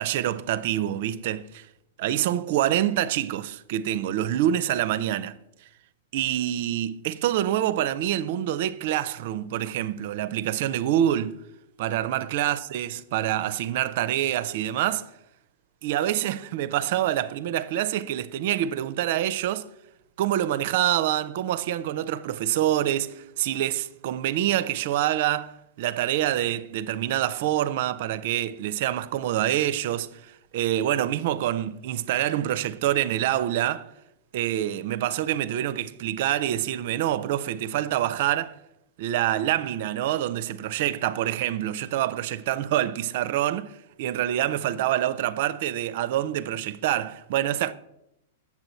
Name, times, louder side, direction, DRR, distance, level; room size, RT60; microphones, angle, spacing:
voice 1, 0.0-1.7 2.0-5.4 6.1-11.4 11.8-15.1 15.8-19.7 20.2-33.9 34.3-38.5 39.0-47.7, right 12 dB, 55° right, 0.5 m, -26 dB
7.9 x 7.1 x 4.2 m
hypercardioid pair, 105°, 0 cm